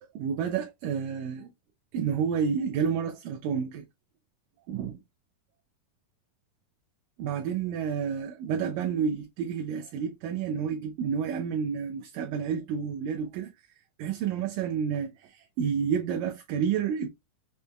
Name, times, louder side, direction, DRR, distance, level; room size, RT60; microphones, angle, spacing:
voice 1, 0.0-1.5 1.9-3.9 4.7-4.9 7.2-13.5 14.0-17.1, right 7 dB, 80° right, 2.0 m, -30 dB
6.2 x 2.8 x 2.2 m
omnidirectional pair, 4.1 m